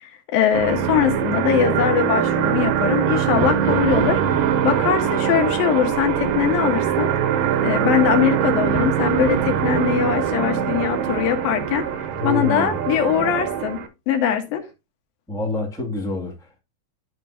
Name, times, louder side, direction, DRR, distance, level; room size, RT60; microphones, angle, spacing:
voice 1, 0.0-4.2 4.6-7.1 7.6-11.9 12.2-13.8 14.1-14.6, left 9 dB, 70° left, 2.9 m, -21 dB
sound 1, 0.5-13.9, right 9 dB, 70° right, 2.4 m, -22 dB
voice 2, 12.2-12.8 15.3-16.6, left 2 dB, 5° left, 0.4 m, -27 dB
12.5 x 4.5 x 2.7 m
omnidirectional pair, 4.5 m